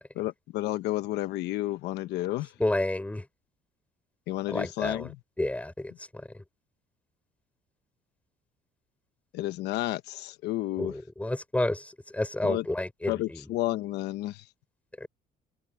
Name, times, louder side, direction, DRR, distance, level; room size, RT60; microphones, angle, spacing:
voice 1, 0.1-2.5 4.3-5.2 9.3-10.9 12.4-12.6 13.1-14.5, left 16 dB, 85° left, 1.1 m, -31 dB
voice 2, 2.6-3.2 4.5-5.1 5.4-6.3 10.8-13.4 15.0-15.1, left 1 dB, 10° left, 4.0 m, -30 dB
open air
cardioid pair, 110°, 17 cm